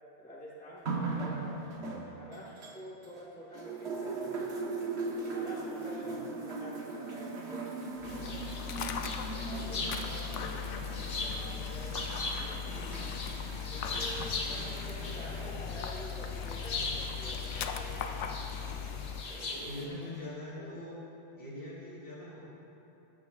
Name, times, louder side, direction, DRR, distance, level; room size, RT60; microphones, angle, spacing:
voice 1, 0.2-4.5 5.1-8.4 9.3-13.1 13.6-18.2 19.3-20.1 20.5-20.9, equal, 5° left, -6 dB, 1.1 m, -48 dB
sound 1, 0.9-3.2 3.5-18.3 19.2-19.3, right 3 dB, 65° right, 1.3 m, -40 dB
Dog, 8.0-19.2, left 7 dB, 90° left, 1.0 m, -38 dB
sound 2, 8.0-19.8, left 3 dB, 70° left, 1.3 m, -40 dB
voice 2, 9.2-9.9 10.3-10.5 19.1-21.0 21.3-22.4, left 1 dB, 50° left, -7 dB, 3.2 m, -44 dB
15.5 x 12.5 x 2.4 m, 3.0 s
omnidirectional pair, 1.2 m